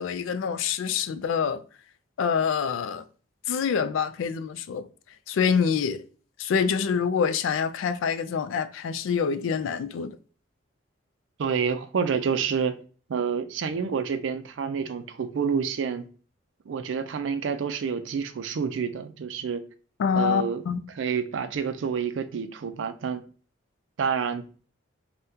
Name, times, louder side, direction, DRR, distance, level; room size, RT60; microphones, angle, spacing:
voice 1, 0.0-1.6 2.2-3.0 3.5-4.9 5.3-6.0 6.4-10.2 20.0-20.9, left 6 dB, 80° left, 0.3 m, -26 dB
voice 2, 11.4-12.8 13.1-16.0 16.7-19.6 20.1-20.6 20.9-23.2 24.0-24.7, right 6 dB, 70° right, 0.4 m, -28 dB
3.5 x 2.2 x 2.7 m
head